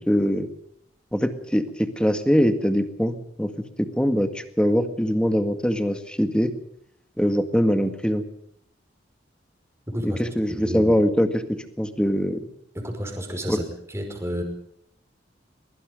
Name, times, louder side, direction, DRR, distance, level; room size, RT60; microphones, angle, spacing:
voice 1, 0.1-0.5 1.1-3.5 3.8-6.5 7.2-8.2 10.0-12.4 13.5-13.6, equal, 5° left, 9 dB, 1.9 m, -22 dB
voice 2, 9.9-10.2 10.6-10.8 12.8-14.4, equal, 15° right, 3 dB, 5.4 m, -31 dB
23.0 x 22.5 x 5.4 m, 0.71 s
head